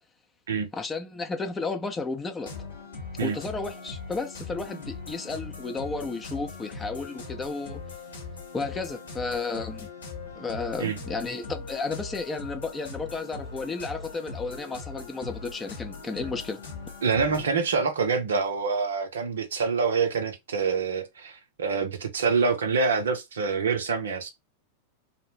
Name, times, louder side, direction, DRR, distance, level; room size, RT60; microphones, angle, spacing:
voice 1, 0.7-2.5 3.2-7.8 8.5-9.9 10.4-16.6, left 3 dB, 15° left, 0.5 m, -33 dB
sound 1, 2.4-17.5, left 4 dB, 70° left, 1.0 m, -40 dB
voice 2, 17.0-24.3, right 5 dB, 65° right, 0.5 m, -26 dB
2.7 x 2.0 x 3.0 m
figure-of-eight pair, 90°, 0 cm